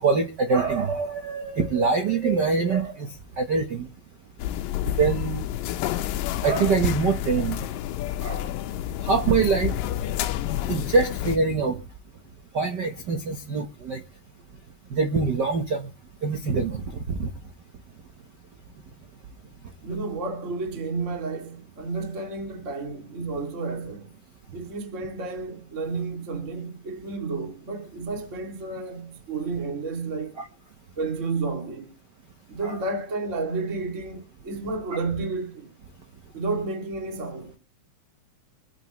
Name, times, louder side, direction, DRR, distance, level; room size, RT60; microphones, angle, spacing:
voice 1, 0.0-3.1 3.4-3.9 4.9-5.4 6.4-7.6 8.2-8.5 9.0-9.7 10.7-11.8 12.5-14.0 14.9-15.9 16.2-16.8 17.2-17.3 30.4-30.5 32.6-32.8, right 4 dB, 85° right, 0.9 m, -24 dB
sound 1, 4.4-11.4, left 12 dB, 85° left, 2.5 m, -29 dB
voice 2, 19.8-24.2 24.5-30.4 31.0-31.9 32.5-35.7 36.3-37.5, right 3 dB, 25° right, 2.4 m, -31 dB
25.0 x 9.4 x 3.1 m
omnidirectional pair, 3.8 m